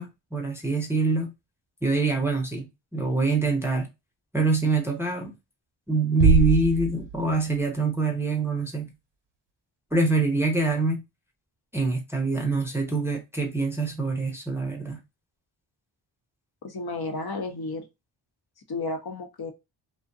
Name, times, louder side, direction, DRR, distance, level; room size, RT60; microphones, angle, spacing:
voice 1, 0.0-1.3 1.8-3.9 4.3-5.3 5.9-8.9 9.9-11.0 11.7-15.0, right 3 dB, 5° right, 0.6 m, -25 dB
sound 1, 6.2-7.6, right 5 dB, 60° right, 0.7 m, -22 dB
voice 2, 16.6-17.9 18.7-19.5, left 3 dB, 50° left, 0.7 m, -32 dB
2.5 x 2.1 x 2.6 m
cardioid pair, 55°, 48 cm